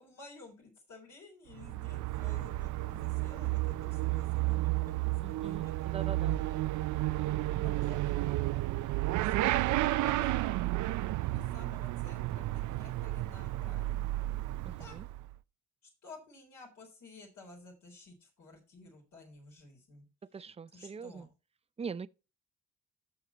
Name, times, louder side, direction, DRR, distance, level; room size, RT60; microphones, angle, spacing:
voice 1, 0.0-6.7 7.5-8.0 9.2-10.6 11.2-14.1 14.8-15.0 15.8-20.1 20.7-21.3, left 3 dB, 70° left, 3.9 m, -54 dB
Motorcycle / Accelerating revving vroom, 1.5-15.3, right 17 dB, 75° right, 0.5 m, -32 dB
voice 2, 5.0-6.4 7.2-7.8 14.6-15.1 20.3-21.3 21.8-22.1, right 5 dB, 20° right, 0.5 m, -43 dB
12.5 x 6.5 x 3.0 m
cardioid pair, 90°, 30 cm